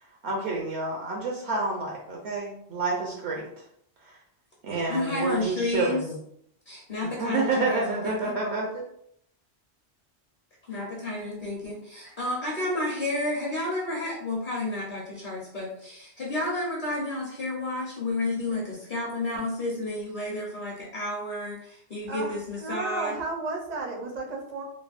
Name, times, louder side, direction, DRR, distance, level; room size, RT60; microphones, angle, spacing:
voice 1, 0.2-3.5 4.6-6.2 7.2-8.8, right 3 dB, 75° right, -2 dB, 0.8 m, -29 dB
voice 2, 4.9-6.0 6.7-8.4 10.6-23.2, left 2 dB, 50° left, -4 dB, 0.8 m, -31 dB
voice 3, 22.6-24.6, right 3 dB, 50° right, 1 dB, 0.5 m, -33 dB
3.2 x 2.0 x 2.4 m, 0.71 s
omnidirectional pair, 1.2 m